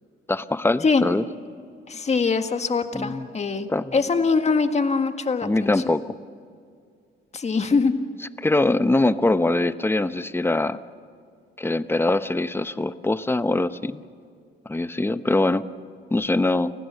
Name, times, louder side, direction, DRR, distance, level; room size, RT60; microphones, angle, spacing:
voice 1, 0.3-1.2 2.9-3.3 3.7-3.9 5.4-6.2 8.4-10.8 11.6-14.0 14.7-15.6 16.1-16.7, left 2 dB, 10° left, 13 dB, 0.8 m, -23 dB
voice 2, 1.9-5.8 7.3-7.9, left 4 dB, 35° left, 7 dB, 1.7 m, -23 dB
30.0 x 16.0 x 7.1 m, 2.3 s
cardioid pair, 90°, 20 cm